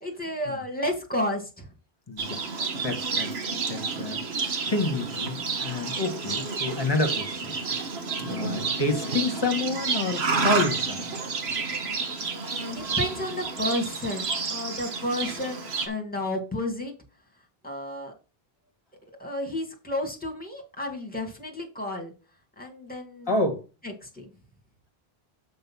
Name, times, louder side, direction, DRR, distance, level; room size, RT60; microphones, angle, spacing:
voice 1, 0.0-1.7 8.2-8.6 12.7-16.9 17.6-18.1 19.2-22.1 22.6-23.3 23.8-24.3, left 1 dB, 10° left, 2.2 m, -32 dB
voice 2, 2.1-2.5 2.8-3.3 3.7-7.5 8.2-11.0 23.3-23.6, left 2 dB, 25° left, 1.7 m, -29 dB
Livestock farm animals working animals, 2.2-15.9, right 4 dB, 85° right, 1.4 m, -30 dB
6.8 x 5.2 x 5.6 m
omnidirectional pair, 1.1 m